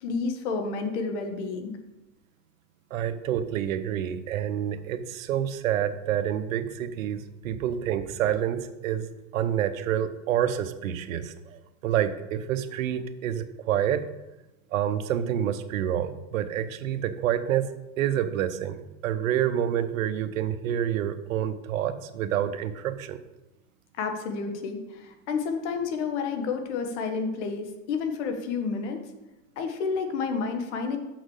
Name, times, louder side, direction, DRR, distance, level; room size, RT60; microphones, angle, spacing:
voice 1, 0.0-1.8 24.0-29.1 29.5-31.0, left 5 dB, 55° left, 5 dB, 1.6 m, -30 dB
voice 2, 2.9-14.0 14.7-17.7 18.0-23.2, right 10 dB, 75° right, 11 dB, 0.9 m, -28 dB
6.5 x 6.0 x 6.5 m, 0.99 s
supercardioid pair, 135°, 40 cm